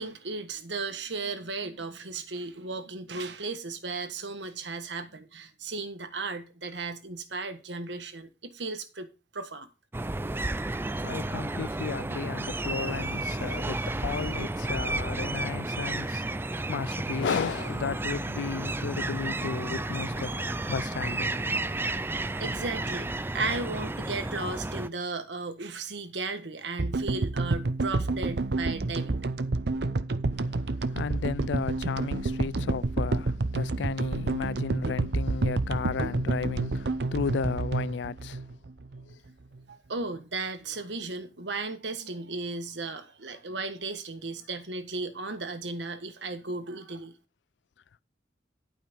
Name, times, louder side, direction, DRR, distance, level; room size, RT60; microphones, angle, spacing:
voice 1, 0.0-9.1 9.3-9.7 22.4-29.1 39.7-47.1, right 3 dB, 85° right, 1.4 m, -35 dB
sound 1, 9.9-24.9, right 2 dB, 15° right, 0.4 m, -32 dB
voice 2, 11.0-21.4 30.9-38.4 39.1-39.2, left 5 dB, 80° left, 0.4 m, -34 dB
sound 2, 26.8-39.1, right 3 dB, 65° right, 0.7 m, -29 dB
11.5 x 5.2 x 5.2 m
head